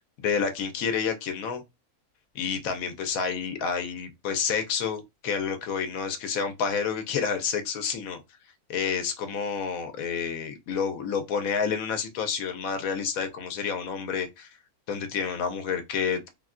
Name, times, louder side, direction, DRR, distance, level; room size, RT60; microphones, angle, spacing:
voice 1, 0.2-1.6 2.3-8.2 8.7-14.5 14.9-16.3, left 6 dB, 70° left, 1.0 m, -29 dB
3.4 x 2.2 x 2.4 m
omnidirectional pair, 1.6 m